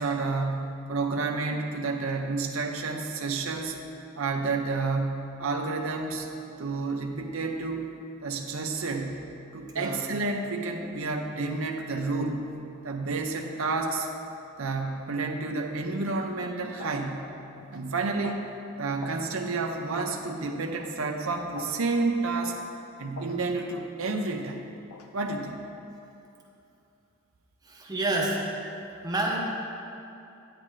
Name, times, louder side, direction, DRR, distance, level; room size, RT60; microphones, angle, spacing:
voice 1, 0.0-3.8 4.2-6.3 6.6-7.9 8.2-9.2 9.5-12.4 12.8-14.1 14.6-17.2 17.7-18.4 18.8-22.6 23.0-24.6 25.1-25.6, right 3 dB, 70° right, 3 dB, 0.7 m, -30 dB
sound 1, 16.1-16.2 16.8-17.0 17.6-17.8 18.2-18.5 19.0-19.2 20.0-20.2 20.8-21.0 21.5-21.8 22.4-22.6 23.2-23.4 24.0-24.2 24.9-25.1, left 4 dB, 85° left, 0.6 m, -43 dB
voice 2, 27.6-28.4 29.0-29.4, right 2 dB, 20° right, -3 dB, 1.1 m, -28 dB
10.5 x 8.7 x 3.2 m, 2.7 s
head